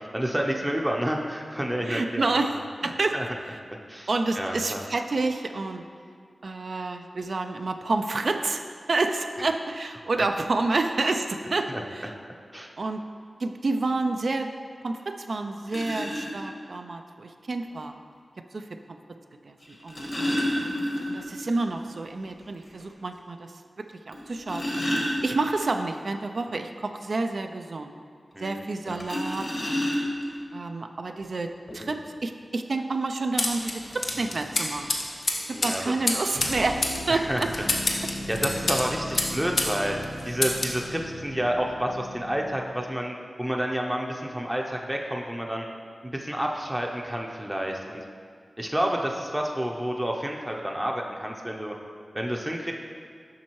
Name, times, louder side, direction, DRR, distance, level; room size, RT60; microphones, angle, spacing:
voice 1, 0.0-2.3 3.1-3.3 3.9-4.1 4.3-4.8 10.7-10.8 11.7-11.8 12.5-12.7 20.3-20.5 28.3-29.0 35.5-35.9 37.1-37.4 38.3-40.0 40.2-45.7 46.0-48.0 48.6-51.7 52.1-52.7, equal, 15° right, 0 dB, 0.6 m, -29 dB
voice 2, 1.8-3.2 4.1-5.8 6.4-8.6 8.9-12.1 12.8-13.0 13.4-14.5 14.8-17.9 18.5-19.0 19.4-20.3 21.1-23.5 24.1-24.8 25.2-27.9 28.4-29.9 30.5-34.9 35.6-37.5, right 3 dB, 70° right, 6 dB, 0.3 m, -29 dB
sound 1, 15.0-15.1 15.7-16.3 17.7-17.8 19.6-21.3 21.7-21.8 22.2-22.3 22.8-22.9 24.1-25.6 29.0-30.3 31.2-31.3 31.7-31.9, left 1 dB, 50° left, 1.4 m, -29 dB
sound 2, 33.4-39.8 40.0-40.8, left 2 dB, 75° left, 0.7 m, -28 dB
sound 3, 36.3-42.8, equal, 90° right, 1.0 m, -38 dB
7.2 x 5.4 x 3.0 m, 2.1 s
cardioid pair, 40°, 0 cm